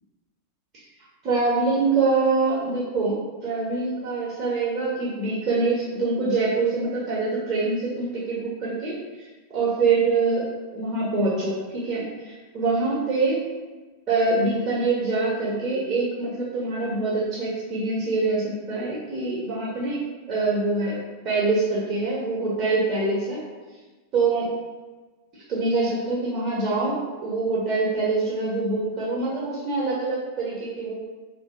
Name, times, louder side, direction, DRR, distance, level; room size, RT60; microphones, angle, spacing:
voice 1, 1.2-8.9 9.5-13.4 14.1-20.0 20.3-23.4 24.1-24.5 25.5-30.9, right 3 dB, 30° right, -6 dB, 0.7 m, -25 dB
3.1 x 2.5 x 2.4 m, 1.3 s
figure-of-eight pair, 90°, 0 cm